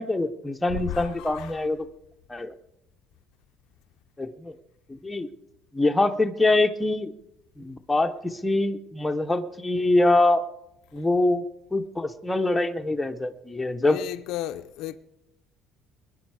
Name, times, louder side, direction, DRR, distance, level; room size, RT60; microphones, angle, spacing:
voice 1, 0.0-1.9 2.3-2.5 4.2-4.6 4.9-5.3 5.7-7.1 7.6-10.4 10.9-11.4 11.7-14.0, left 2 dB, 5° left, 0.7 m, -24 dB
voice 2, 0.8-1.5 13.8-15.0, left 12 dB, 60° left, 0.5 m, -33 dB
21.0 x 10.5 x 4.7 m
cardioid pair, 175°, 0 cm